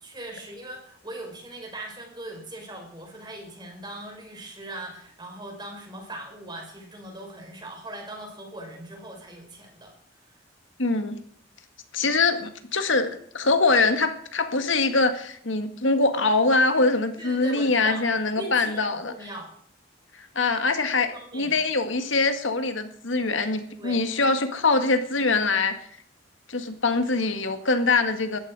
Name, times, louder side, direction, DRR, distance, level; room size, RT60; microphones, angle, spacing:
voice 1, 0.0-9.9 17.2-18.1 18.4-19.5 21.0-21.5 23.7-24.0, right 1 dB, 25° right, 2 dB, 5.0 m, -40 dB
voice 2, 10.8-11.2 11.9-13.1 13.3-19.1 20.4-25.7 26.5-28.4, left 3 dB, 80° left, 8 dB, 1.9 m, -23 dB
18.5 x 14.0 x 4.9 m, 0.62 s
head